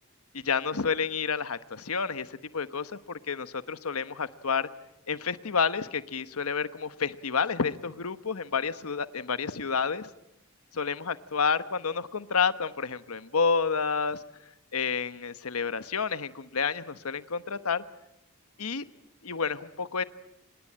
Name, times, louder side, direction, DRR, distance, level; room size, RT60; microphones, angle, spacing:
voice 1, 0.3-4.7 5.1-10.1 10.7-14.2 14.7-17.8 18.6-18.8 19.2-20.0, left 5 dB, 80° left, 12 dB, 1.1 m, -29 dB
26.0 x 21.0 x 8.8 m, 0.86 s
head